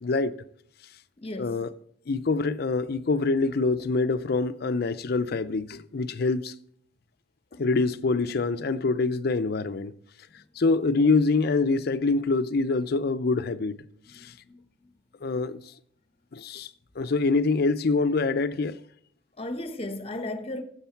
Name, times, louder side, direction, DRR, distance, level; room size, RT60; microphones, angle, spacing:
voice 1, 0.0-0.3 1.4-1.7 2.1-6.5 7.6-9.9 10.6-13.8 14.1-14.3 15.2-15.6 16.3-16.7 17.0-18.8, left 3 dB, 55° left, 0.5 m, -25 dB
voice 2, 1.2-1.7 7.5-7.7 10.4-10.5 14.1-14.6 19.4-20.6, left 1 dB, 35° left, 1.1 m, -36 dB
12.5 x 7.9 x 4.5 m
head